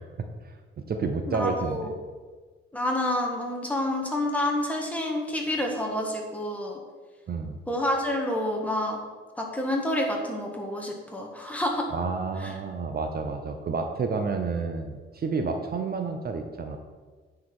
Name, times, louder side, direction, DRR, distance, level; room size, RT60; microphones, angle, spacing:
voice 1, 0.2-1.9 7.3-7.6 11.9-16.8, right 4 dB, 45° right, 6 dB, 0.8 m, -30 dB
voice 2, 1.3-1.9 2.7-6.8 7.7-9.0 9.4-11.9 12.4-12.5, left 1 dB, 5° left, 0 dB, 1.6 m, -28 dB
9.4 x 4.9 x 6.0 m, 1.4 s
wide cardioid pair, 135°, 21 cm